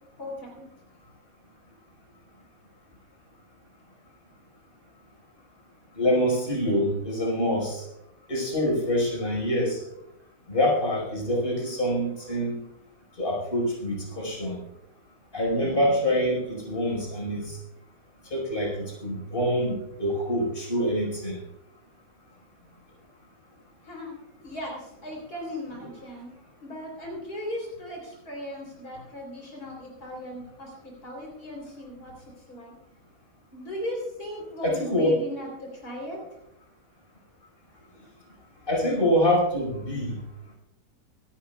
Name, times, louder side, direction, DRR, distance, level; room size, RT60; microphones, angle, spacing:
voice 1, 0.2-0.6 23.8-24.2 24.4-26.3 26.6-32.8 33.5-36.2, left 1 dB, 65° left, -1 dB, 4.3 m, -37 dB
voice 2, 6.0-7.8 8.3-9.8 10.5-12.6 13.2-14.6 15.3-17.6 18.3-21.4 34.6-35.1 38.7-40.2, equal, 35° left, -2 dB, 5.3 m, -25 dB
25.5 x 13.0 x 2.3 m, 0.81 s
omnidirectional pair, 1.7 m